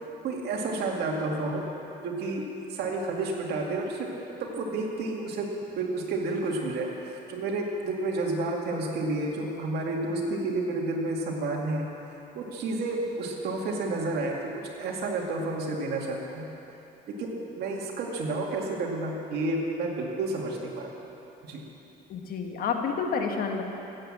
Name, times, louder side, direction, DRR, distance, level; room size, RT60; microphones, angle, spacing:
voice 1, 0.2-1.6 2.0-2.4 2.7-4.1 4.4-5.5 5.8-16.5 17.2-21.0 21.4-21.6, right 2 dB, 75° right, -1 dB, 2.3 m, -30 dB
voice 2, 22.1-23.6, left 5 dB, 60° left, 3 dB, 1.6 m, -29 dB
15.5 x 8.3 x 7.5 m, 2.9 s
cardioid pair, 110°, 17 cm